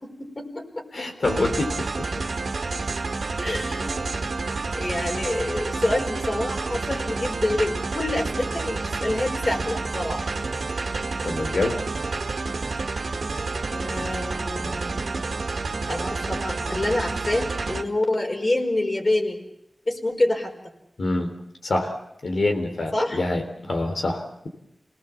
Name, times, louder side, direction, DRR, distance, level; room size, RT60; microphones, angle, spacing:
voice 1, 0.0-1.0 3.4-4.0 4.7-10.2 13.7-15.2 15.9-19.4 19.9-20.5 22.9-23.2, left 1 dB, 40° left, 2 dB, 4.8 m, -27 dB
voice 2, 0.9-2.2 11.2-11.8 21.0-21.3 21.6-22.0 22.2-24.5, left 2 dB, 75° left, 4 dB, 3.6 m, -26 dB
sound 1, 1.2-17.8, right 3 dB, 80° right, 1.8 m, -29 dB
28.5 x 19.0 x 7.2 m, 0.81 s
wide cardioid pair, 80°, 0 cm